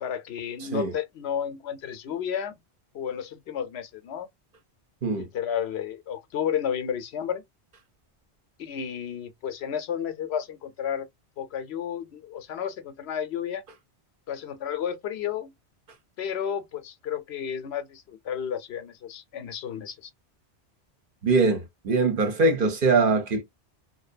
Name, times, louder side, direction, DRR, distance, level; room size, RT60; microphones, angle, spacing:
voice 1, 0.0-2.5 2.9-4.3 5.1-7.4 8.6-11.1 11.4-13.6 14.3-15.5 16.2-20.1, left 8 dB, 70° left, 0.8 m, -32 dB
voice 2, 0.6-0.9 5.0-5.2 21.2-23.4, right 3 dB, 55° right, 0.8 m, -22 dB
2.6 x 2.2 x 2.3 m
omnidirectional pair, 1.1 m